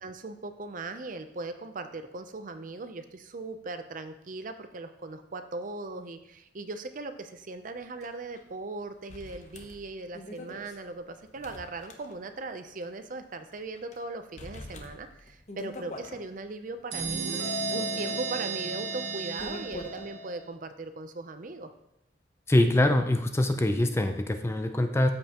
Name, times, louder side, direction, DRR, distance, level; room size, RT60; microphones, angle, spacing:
voice 1, 0.0-17.3 17.7-21.7, right 3 dB, 45° right, 9 dB, 0.6 m, -39 dB
sound 1, 8.0-8.1 8.4-8.5 9.1-12.5 12.8-12.9 13.5-14.0 14.4-16.2 16.8-20.1, left 1 dB, 40° left, 0.9 m, -44 dB
sound 2, 16.9-20.5, right 3 dB, 65° right, 1.1 m, -33 dB
voice 2, 22.5-25.1, left 1 dB, 15° left, 6 dB, 0.5 m, -24 dB
13.0 x 5.3 x 2.9 m, 0.81 s
head